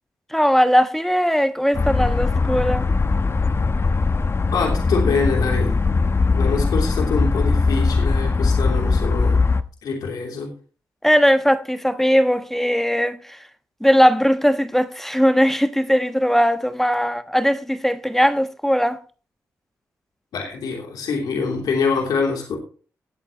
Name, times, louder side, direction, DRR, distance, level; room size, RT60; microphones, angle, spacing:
voice 1, 0.3-2.9 11.0-13.4 13.8-19.0, equal, 5° left, 1.2 m, -19 dB
sound 1, 1.7-9.6, left 4 dB, 40° left, 0.9 m, -20 dB
voice 2, 4.5-5.7 6.3-9.4 9.8-10.5 20.3-22.6, left 4 dB, 80° left, 3.1 m, -25 dB
18.0 x 8.4 x 3.0 m
supercardioid pair, 45°, 7 cm